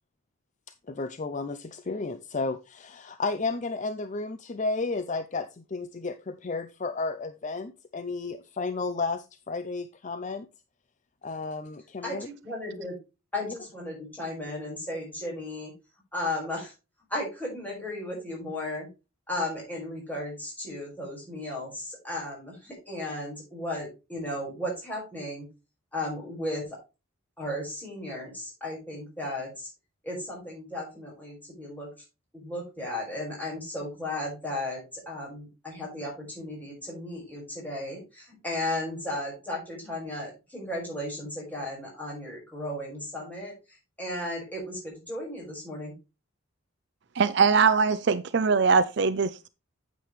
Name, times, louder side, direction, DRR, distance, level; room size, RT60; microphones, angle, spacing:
voice 1, 0.9-10.5 11.2-12.3, left 3 dB, 35° left, 0.5 m, -32 dB
voice 2, 12.0-13.0 13.3-15.7 16.1-16.7 17.1-18.9 19.3-25.5 25.9-26.8 27.4-29.7 30.0-31.9 32.3-43.5 44.0-45.9, left 1 dB, 10° left, 5.3 m, -35 dB
voice 3, 47.2-49.5, right 5 dB, 55° right, 0.5 m, -22 dB
9.0 x 7.5 x 3.2 m
head